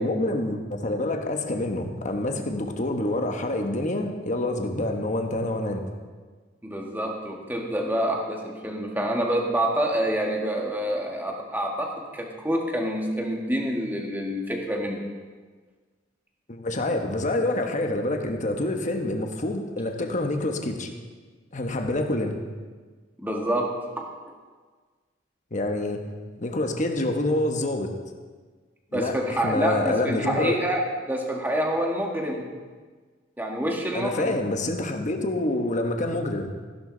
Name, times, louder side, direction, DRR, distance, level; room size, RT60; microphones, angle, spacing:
voice 1, 0.0-5.8 16.5-20.9 21.5-22.4 25.5-26.0 26.4-27.9 28.9-30.6 33.9-36.5, left 1 dB, 40° left, 4 dB, 1.2 m, -27 dB
voice 2, 6.6-15.0 23.2-24.1 28.9-30.8 31.1-32.5 33.4-34.4, equal, 10° right, 0 dB, 1.6 m, -27 dB
15.0 x 11.0 x 3.9 m, 1.5 s
head